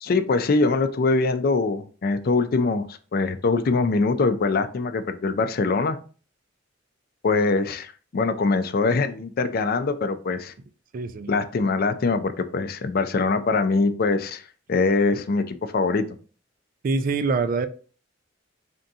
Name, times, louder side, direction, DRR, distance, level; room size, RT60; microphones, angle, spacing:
voice 1, 0.0-2.9 3.1-6.0 7.2-10.5 11.3-16.0, left 3 dB, 50° left, 0.4 m, -23 dB
voice 2, 10.9-11.3 16.8-17.7, right 4 dB, 45° right, 0.3 m, -24 dB
3.8 x 3.4 x 2.7 m
head